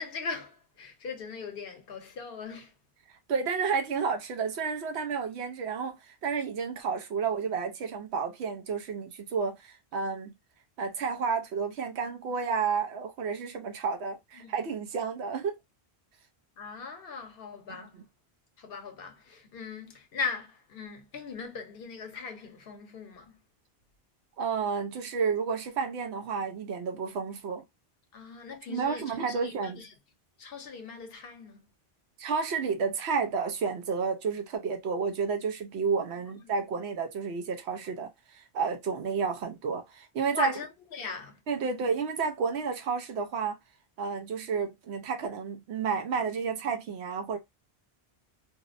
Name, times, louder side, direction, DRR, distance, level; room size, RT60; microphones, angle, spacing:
voice 1, 0.0-2.7 14.3-14.5 16.6-18.0 18.6-23.4 28.1-29.9 30.4-31.7 36.3-36.4 40.3-41.4, left 4 dB, 65° left, 0.8 m, -39 dB
voice 2, 3.3-10.3 10.8-15.6 17.7-18.0 24.4-27.6 28.7-29.8 32.2-40.5 41.5-43.6 44.0-47.4, right 5 dB, 80° right, 0.9 m, -31 dB
2.7 x 2.0 x 2.4 m
omnidirectional pair, 1.1 m